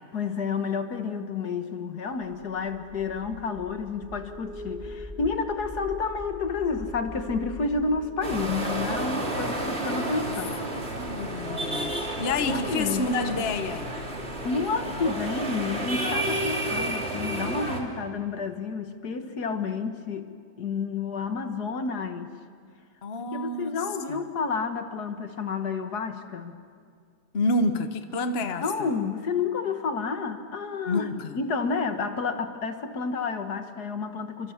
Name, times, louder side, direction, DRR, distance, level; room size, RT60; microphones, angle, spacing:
voice 1, 0.1-10.6 12.5-13.1 14.4-20.3 20.6-22.3 23.2-26.6 28.4-31.1 31.4-34.5, left 4 dB, 65° left, 7 dB, 1.9 m, -30 dB
sound 1, 2.2-17.2, left 1 dB, 5° right, 4.1 m, -43 dB
sound 2, 8.2-17.8, right 1 dB, 35° right, 2.9 m, -31 dB
voice 2, 10.0-10.4 10.7-13.9 23.0-23.7 24.1-24.2 27.3-28.9 30.9-31.4, left 2 dB, 40° left, 8 dB, 1.3 m, -29 dB
28.5 x 25.0 x 7.2 m, 2.1 s
omnidirectional pair, 1.8 m